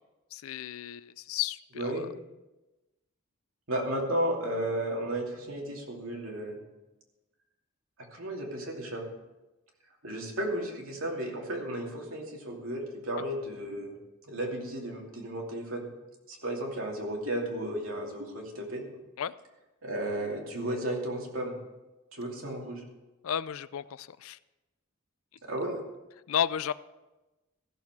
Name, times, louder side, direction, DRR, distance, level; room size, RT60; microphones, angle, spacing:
voice 1, 0.3-2.1 13.2-13.3 19.2-19.3 23.2-24.4 26.3-26.7, left 9 dB, 85° left, 17 dB, 0.4 m, -33 dB
voice 2, 1.8-2.1 3.7-6.6 8.1-9.0 10.0-14.0 14.3-15.9 16.3-18.9 19.8-21.5 22.1-22.8 25.4-25.7, right 1 dB, 80° right, 0 dB, 2.6 m, -33 dB
15.0 x 7.2 x 6.1 m, 1.1 s
head